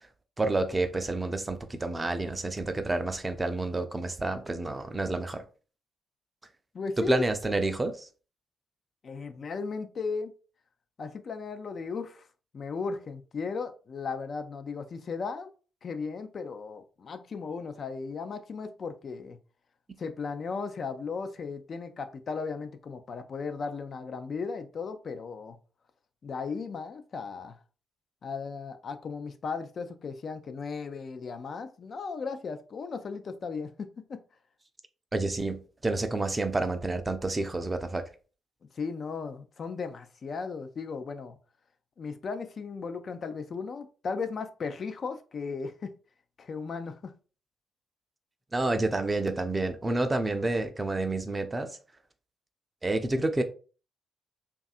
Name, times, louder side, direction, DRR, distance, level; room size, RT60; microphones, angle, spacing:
voice 1, 0.4-5.4 7.0-8.1 35.1-38.0 48.5-51.7 52.8-53.4, right 2 dB, 25° right, 0.4 m, -29 dB
voice 2, 6.7-7.2 9.0-10.3 11.0-12.3 12.5-15.5 15.8-19.4 20.0-25.6 26.2-27.6 28.2-34.2 38.7-41.4 42.0-45.9 46.4-47.1, left 4 dB, 50° left, 0.3 m, -36 dB
2.6 x 2.3 x 2.4 m
hypercardioid pair, 45°, 0 cm